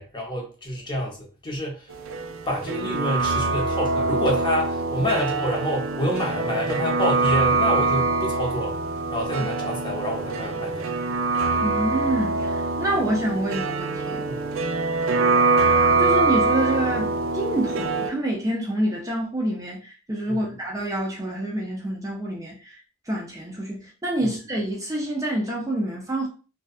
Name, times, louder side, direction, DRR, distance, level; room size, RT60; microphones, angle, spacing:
voice 1, 0.0-1.9 2.5-8.7 9.1-10.9 14.3-14.6 20.3-20.5 24.2-24.4, equal, 25° left, 0.7 m, -27 dB
sound 1, 1.9-18.1, right 3 dB, 80° right, 0.4 m, -24 dB
voice 2, 11.6-14.2 16.0-22.8 23.1-26.3, right 1 dB, 15° right, 0.5 m, -27 dB
2.6 x 2.2 x 2.3 m
head